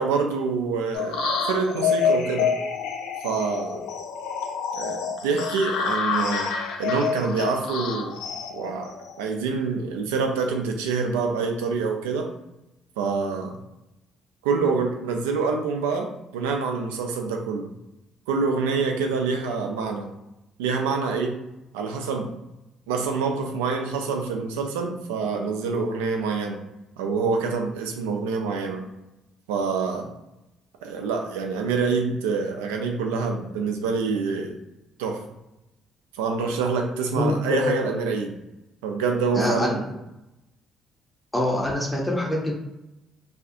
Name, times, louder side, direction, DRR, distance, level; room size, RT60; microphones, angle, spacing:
voice 1, 0.0-2.5 3.2-3.8 4.7-6.5 6.8-8.2 8.5-8.9 9.2-12.3 13.0-13.6 14.4-17.7 18.3-20.1 20.6-21.4 21.7-22.3 22.9-26.6 27.0-28.9 29.5-30.1 30.8-34.5 35.0-35.2 36.2-38.4 38.8-39.9, right 4 dB, 85° right, 3 dB, 0.3 m, -26 dB
sound 1, 0.9-9.4, left 5 dB, 75° left, 0.3 m, -27 dB
voice 2, 37.2-37.8 39.3-40.0 41.3-42.5, left 1 dB, 10° left, -2 dB, 0.6 m, -25 dB
2.4 x 2.3 x 2.6 m, 0.93 s
hypercardioid pair, 55°, 0 cm